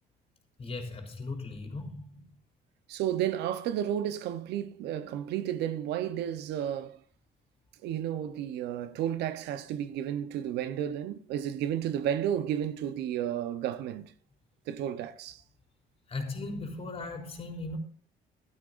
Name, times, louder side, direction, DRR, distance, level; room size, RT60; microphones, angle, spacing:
voice 1, 0.6-2.2 16.1-17.8, left 3 dB, 35° left, 3.6 m, -38 dB
voice 2, 2.9-7.0 7.8-14.1 14.7-15.4, right 10 dB, 80° right, 0.8 m, -32 dB
15.5 x 12.5 x 2.5 m
cardioid pair, 110°, 17 cm